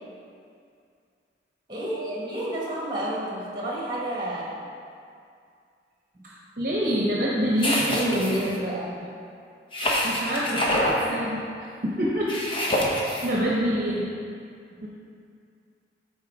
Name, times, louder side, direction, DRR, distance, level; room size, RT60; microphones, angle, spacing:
voice 1, 1.7-4.6 7.9-9.1 14.7-14.9, right 1 dB, 25° right, -5 dB, 1.7 m, -31 dB
voice 2, 6.2-8.6 10.0-11.4 11.8-12.4 12.8-14.0 14.8-14.9, equal, 50° right, -5 dB, 0.9 m, -26 dB
sound 1, 7.6-8.5 9.7-11.0 12.3-13.3, equal, 30° left, 1.0 m, -26 dB
12.5 x 4.3 x 3.6 m, 2.3 s
head